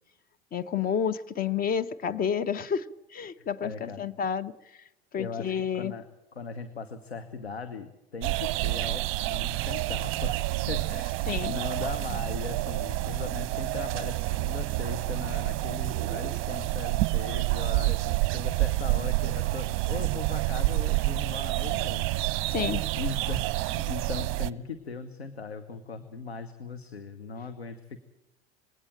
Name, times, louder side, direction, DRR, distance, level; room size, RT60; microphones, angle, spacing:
voice 1, 0.5-4.5 5.1-5.9 11.3-11.5 22.5-22.9, left 7 dB, 30° left, 15 dB, 1.1 m, -30 dB
voice 2, 3.4-4.1 5.2-6.0 6.3-22.1 22.4-22.5 22.9-28.0, left 5 dB, 80° left, 9 dB, 1.4 m, -39 dB
sound 1, 8.2-24.5, right 20 dB, 40° right, 0.7 m, -28 dB
21.0 x 17.0 x 9.1 m, 0.91 s
figure-of-eight pair, 80°, 31 cm